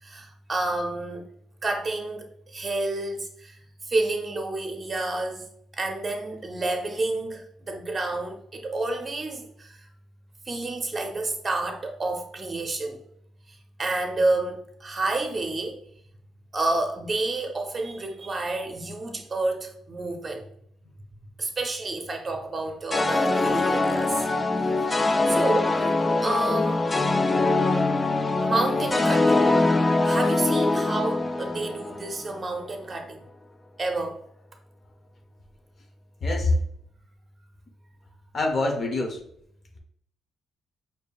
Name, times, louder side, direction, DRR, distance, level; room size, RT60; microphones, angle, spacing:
voice 1, 0.0-1.3 1.6-3.6 3.9-5.4 5.7-9.8 10.5-13.0 13.8-15.8 16.5-20.4 21.4-24.3 24.6-24.7 25.3-25.8 26.2-27.0 28.4-29.6 30.0-33.2 33.8-34.2, right 2 dB, 30° right, 4 dB, 0.7 m, -29 dB
sound 1, 22.9-32.2, left 2 dB, 20° left, 0.4 m, -23 dB
voice 2, 36.2-36.5 38.3-39.2, left 2 dB, 45° left, 2 dB, 0.8 m, -25 dB
5.0 x 2.8 x 2.3 m, 0.70 s
cardioid pair, 90°, 0 cm